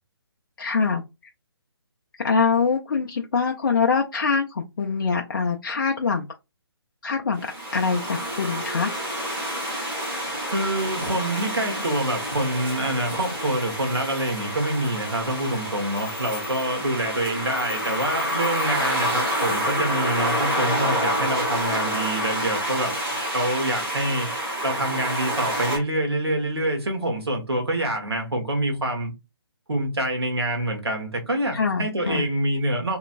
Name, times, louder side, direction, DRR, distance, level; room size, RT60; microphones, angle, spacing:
voice 1, 0.6-1.3 2.2-6.3 7.0-8.9 31.5-32.3, left 5 dB, 50° left, 0.5 m, -24 dB
sound 1, 7.4-25.8, equal, 15° right, 1.5 m, -28 dB
voice 2, 10.5-22.9 23.3-24.3 24.6-29.1 29.7-33.0, right 1 dB, 70° right, 1.5 m, -26 dB
3.0 x 2.9 x 2.5 m
figure-of-eight pair, 140°, 14 cm